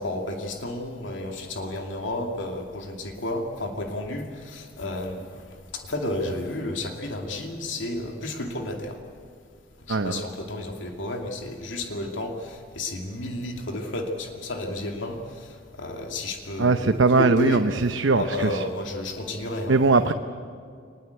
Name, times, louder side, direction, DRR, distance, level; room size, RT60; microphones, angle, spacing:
voice 1, 0.0-5.4 5.8-8.9 9.9-15.5 15.8-17.6 18.1-19.8 20.0-20.1, left 1 dB, 85° left, 3 dB, 2.5 m, -32 dB
voice 2, 9.9-10.2 16.6-18.6 19.7-20.1, right 3 dB, 85° right, 8 dB, 0.8 m, -20 dB
23.5 x 20.5 x 8.2 m, 2.3 s
head